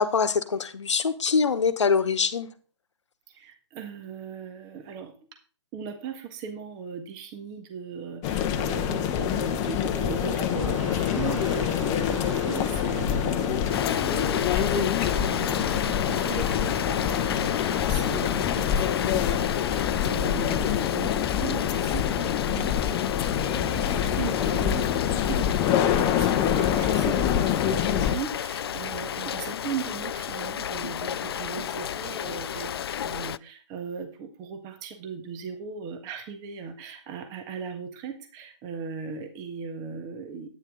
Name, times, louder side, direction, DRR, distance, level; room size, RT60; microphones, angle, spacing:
voice 1, 0.0-2.5, left 5 dB, 70° left, 11 dB, 1.1 m, -24 dB
voice 2, 3.3-5.2 5.7-40.5, right 6 dB, 25° right, 6 dB, 1.5 m, -38 dB
sound 1, 8.2-28.1, left 9 dB, 25° left, 0.9 m, -26 dB
sound 2, 9.5-19.8, right 3 dB, 80° right, 1.4 m, -40 dB
Rain, 13.7-33.4, left 10 dB, 55° left, 0.4 m, -32 dB
10.0 x 9.5 x 3.7 m, 0.39 s
figure-of-eight pair, 135°, 15 cm